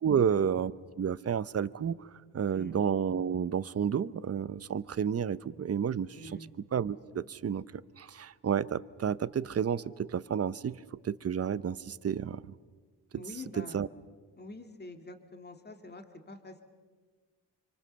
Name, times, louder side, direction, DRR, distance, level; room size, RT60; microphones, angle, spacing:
voice 1, 0.0-0.7 1.0-2.1 2.3-6.4 6.7-7.6 8.0-10.8 11.0-12.5 13.6-13.9, right 7 dB, 35° right, 17 dB, 0.8 m, -31 dB
voice 2, 6.1-6.5 13.1-13.8 14.4-16.6, left 2 dB, 25° left, 6 dB, 2.4 m, -46 dB
27.0 x 25.0 x 6.9 m, 1.5 s
cardioid pair, 90°, 42 cm